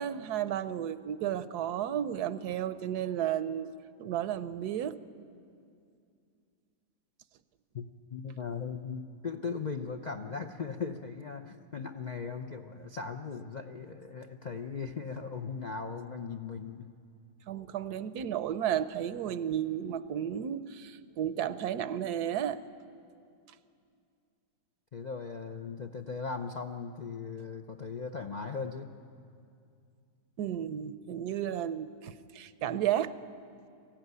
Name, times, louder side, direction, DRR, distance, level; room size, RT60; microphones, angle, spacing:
voice 1, 0.0-3.7 4.0-5.0 17.5-22.6 30.4-33.2, right 10 dB, 75° right, 13 dB, 1.2 m, -33 dB
voice 2, 7.7-16.9 24.9-28.9, left 5 dB, 55° left, 4 dB, 0.5 m, -38 dB
22.5 x 15.0 x 9.5 m, 2.4 s
omnidirectional pair, 1.7 m